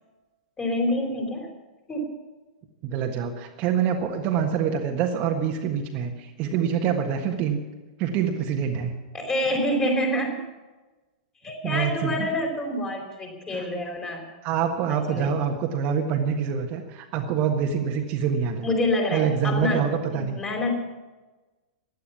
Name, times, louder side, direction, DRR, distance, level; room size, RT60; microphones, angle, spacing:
voice 1, 0.6-1.5 1.9-2.2 9.1-10.5 11.4-14.2 14.9-15.4 18.6-20.7, left 1 dB, 20° left, 2 dB, 3.9 m, -27 dB
voice 2, 2.8-7.6 8.0-8.9 11.6-12.3 13.5-13.6 14.4-18.7 19.1-20.4, right 7 dB, 35° right, 3 dB, 1.5 m, -26 dB
16.0 x 11.5 x 7.2 m, 1.2 s
figure-of-eight pair, 100°, 4 cm